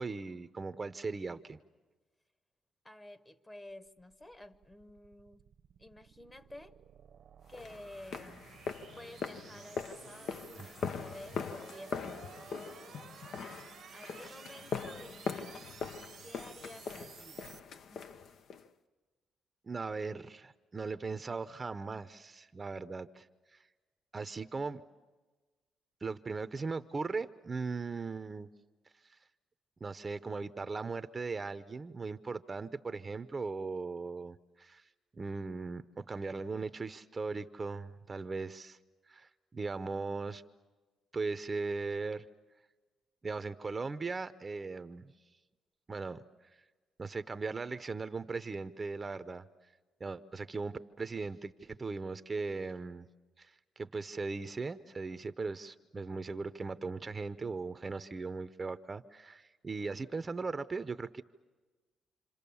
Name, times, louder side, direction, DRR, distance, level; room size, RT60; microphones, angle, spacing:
voice 1, 0.0-1.6 10.6-10.7 14.2-14.3 19.6-23.3 23.5-23.6 24.1-24.8 26.0-28.5 29.1-29.2 29.8-34.8 35.1-38.8 39.1-40.4 41.1-42.3 43.2-45.1 45.9-46.2 47.0-49.4 50.0-53.1 53.4-61.2, right 4 dB, 30° right, 0.7 m, -38 dB
voice 2, 2.8-5.4 5.8-6.8 7.5-8.4 8.9-12.5 13.9-15.7 16.0-17.5 17.9-18.1 60.2-60.5, left 1 dB, 20° left, 1.2 m, -52 dB
sound 1, 3.9-17.6, right 8 dB, 60° right, 0.9 m, -54 dB
sound 2, 7.5-18.7, left 6 dB, 65° left, 0.9 m, -41 dB
28.0 x 26.5 x 7.0 m
cardioid pair, 90°, 0 cm